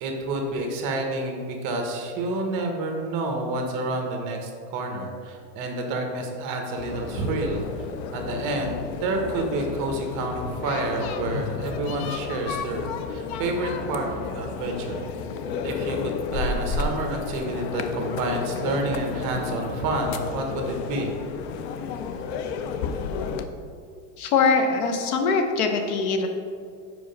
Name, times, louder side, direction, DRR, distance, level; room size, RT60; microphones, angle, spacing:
voice 1, 0.0-7.9 8.1-14.1 14.3-15.0 15.6-21.1, right 2 dB, 40° right, 3 dB, 1.0 m, -29 dB
sound 1, 6.8-23.5, left 5 dB, 45° left, 0.4 m, -32 dB
voice 2, 24.2-26.3, left 4 dB, 65° left, 4 dB, 1.1 m, -22 dB
5.0 x 4.9 x 5.2 m, 2.2 s
supercardioid pair, 150°, 47 cm